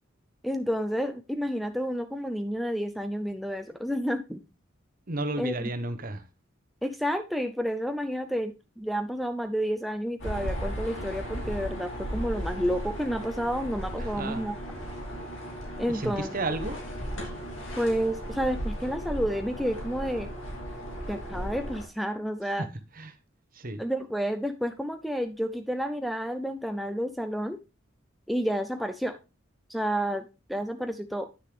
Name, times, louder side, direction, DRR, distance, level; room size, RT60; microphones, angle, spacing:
voice 1, 0.4-4.4 5.4-5.6 6.8-14.5 15.8-16.3 17.8-20.3 21.1-22.7 23.8-27.6 28.3-29.2 29.7-31.3, equal, ahead, 0.4 m, -30 dB
voice 2, 5.1-6.2 14.0-14.5 15.9-16.8 22.6-22.7 22.9-23.2 23.5-23.8, right 2 dB, 45° right, 1.0 m, -33 dB
sound 1, 10.2-21.8, equal, 85° left, 2.8 m, -36 dB
9.6 x 6.4 x 3.3 m
head